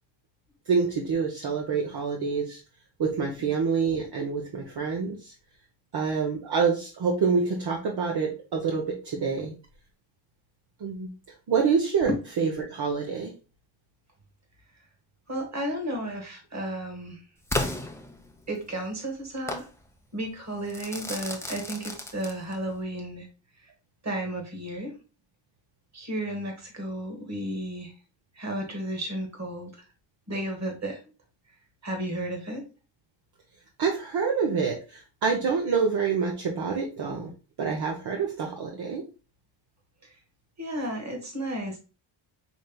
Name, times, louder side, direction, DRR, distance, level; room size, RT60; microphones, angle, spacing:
voice 1, 0.7-2.6 3.0-5.3 5.9-9.5 10.8-11.1 11.5-12.1 12.4-13.3 33.8-37.3 37.6-39.0, right 5 dB, 55° right, 0 dB, 0.9 m, -27 dB
voice 2, 15.3-17.2 18.5-19.7 20.1-23.3 24.0-25.0 25.9-27.9 28.3-29.8 30.3-31.0 31.8-32.7 40.6-41.8, right 1 dB, 35° right, 3 dB, 1.5 m, -33 dB
Crackle / Fireworks, 17.5-18.7 19.5-19.7 20.7-22.7, left 1 dB, 5° left, 0.6 m, -33 dB
5.2 x 3.2 x 2.3 m, 0.34 s
cardioid pair, 105°, 48 cm